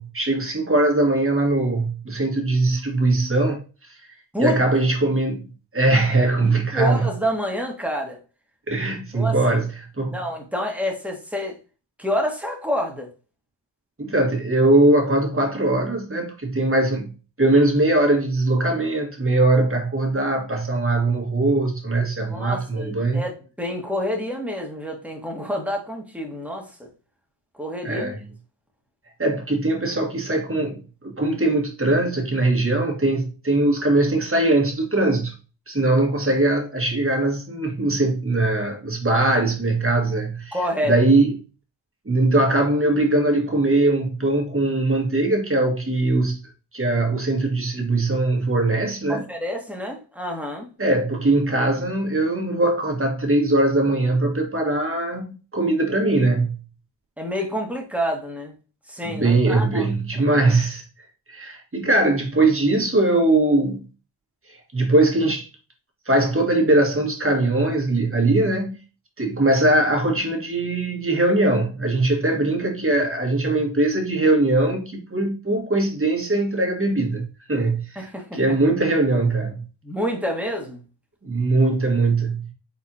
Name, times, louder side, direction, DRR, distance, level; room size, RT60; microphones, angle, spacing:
voice 1, 0.0-4.0 4.4-7.1 8.7-10.2 14.0-17.1 17.4-23.2 27.8-28.2 29.2-35.4 35.7-41.4 42.0-49.2 50.8-56.6 59.0-60.8 61.3-63.9 64.5-65.5 66.1-68.8 69.2-79.7 81.2-82.5, right 2 dB, 30° right, 1.8 m, -21 dB
voice 2, 6.4-8.2 9.1-9.4 10.1-11.6 12.0-13.1 22.3-26.9 27.6-28.1 40.5-41.0 49.1-50.7 57.2-58.5 58.9-59.9 78.0-78.4 79.8-80.8, equal, 5° right, 1.7 m, -28 dB
4.4 x 4.1 x 2.8 m
cardioid pair, 45°, 45 cm